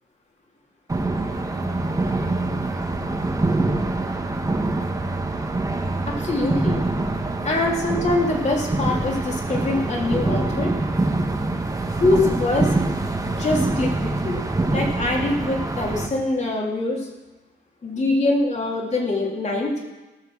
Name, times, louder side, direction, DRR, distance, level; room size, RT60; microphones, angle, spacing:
sound 1, 0.9-16.1, right 2 dB, 15° right, 1.8 m, -25 dB
voice 1, 6.1-6.8 7.4-10.7 11.9-12.7 13.2-14.4 14.7-17.1 17.8-19.7, left 2 dB, 35° left, -1 dB, 3.4 m, -24 dB
19.0 x 6.6 x 6.4 m, 1.1 s
cardioid pair, 90°, 20 cm